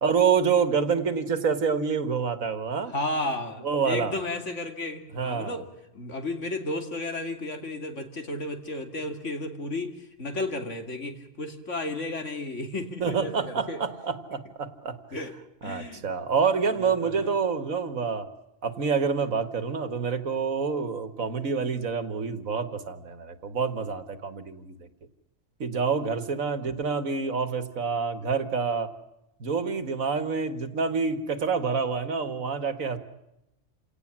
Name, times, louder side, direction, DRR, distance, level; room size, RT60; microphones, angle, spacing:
voice 1, 0.0-2.9 3.6-4.1 5.1-5.6 13.0-15.0 15.6-18.3 18.6-24.9 25.6-28.9 29.4-33.0, right 5 dB, 85° right, 11 dB, 2.0 m, -27 dB
voice 2, 2.9-5.6 5.9-13.8 15.1-15.3 15.6-16.0 16.7-17.3 26.6-26.7, left 2 dB, 65° left, 5 dB, 3.0 m, -33 dB
28.0 x 18.0 x 7.4 m, 0.89 s
omnidirectional pair, 1.4 m